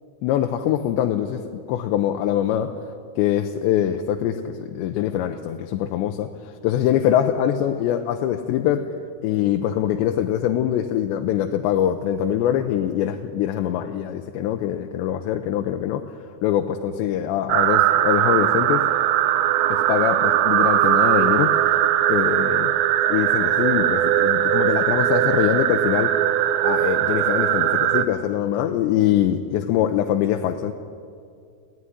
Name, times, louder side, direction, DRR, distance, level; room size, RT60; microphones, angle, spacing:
voice 1, 0.2-1.4 1.7-2.7 3.2-8.9 9.2-16.1 16.4-18.8 19.7-21.8 22.1-22.7 23.1-26.1 26.6-30.7, left 11 dB, 85° left, 5 dB, 3.0 m, -23 dB
sound 1, 17.5-28.0, right 12 dB, 75° right, 2.5 m, -20 dB
20.5 x 16.0 x 9.9 m, 2.3 s
omnidirectional pair, 5.0 m